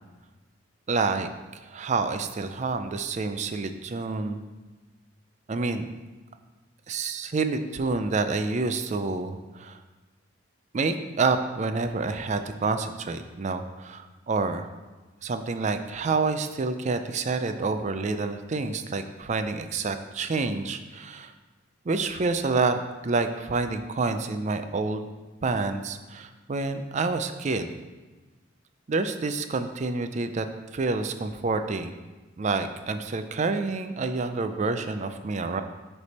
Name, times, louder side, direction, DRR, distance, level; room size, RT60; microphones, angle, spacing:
voice 1, 0.9-4.4 5.5-5.9 6.9-9.8 10.7-14.7 15.2-21.3 21.9-25.0 25.4-27.7 28.9-30.5 30.7-31.9 32.4-35.6, right 3 dB, 35° right, 8 dB, 0.4 m, -28 dB
9.2 x 3.4 x 4.2 m, 1.2 s
head